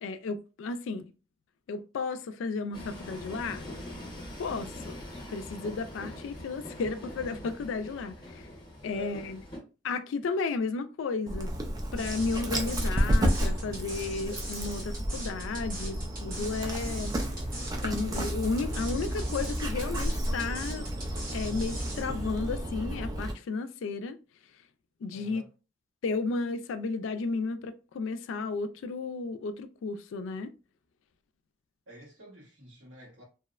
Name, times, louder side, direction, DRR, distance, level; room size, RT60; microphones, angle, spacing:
voice 1, 0.0-1.1 1.7-3.7 4.4-5.0 5.3-8.4 8.8-9.4 9.8-11.5 11.9-17.1 17.8-20.9 21.3-24.2 25.0-25.4 26.0-30.5, left 4 dB, 75° left, 0.3 m, -33 dB
Train, 2.7-9.6, left 1 dB, 20° left, 0.8 m, -43 dB
voice 2, 8.8-9.2 25.1-25.5 31.9-33.2, right 2 dB, 75° right, 1.3 m, -48 dB
Dog, 11.3-23.3, equal, 20° right, 0.3 m, -31 dB
sound 1, 12.0-22.0, right 1 dB, 45° right, 0.9 m, -42 dB
2.6 x 2.0 x 2.3 m
head